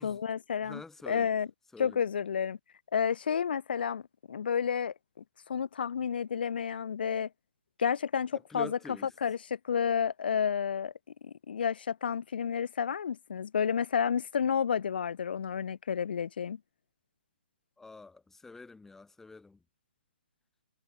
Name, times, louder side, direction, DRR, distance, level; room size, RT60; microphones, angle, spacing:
voice 1, 0.0-0.8 1.1-1.5 1.8-2.6 2.9-4.0 4.3-4.9 5.5-7.3 7.8-8.7 9.2-10.9 11.2-16.6, left 7 dB, 60° left, 2.0 m, -30 dB
voice 2, 0.6-1.3 1.7-2.0 8.3-9.1 17.8-19.6, left 3 dB, 5° left, 6.2 m, -46 dB
figure-of-eight pair, 135°, 6 cm